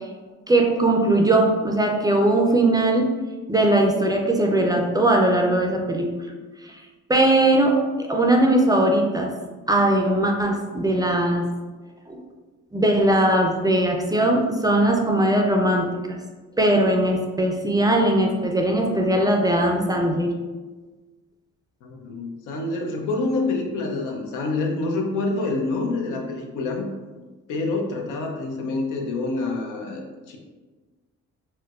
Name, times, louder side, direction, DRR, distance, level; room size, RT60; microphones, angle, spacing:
voice 1, 0.5-3.1 3.5-6.1 6.6-6.7 7.1-9.3 9.7-11.5 12.1-12.2 12.7-16.2 16.6-20.3, right 1 dB, 15° right, 2 dB, 0.3 m, -20 dB
voice 2, 21.8-26.9 27.5-30.0 30.3-30.4, left 3 dB, 90° left, 1 dB, 0.6 m, -27 dB
4.4 x 2.2 x 2.4 m, 1.3 s
cardioid pair, 90°, 30 cm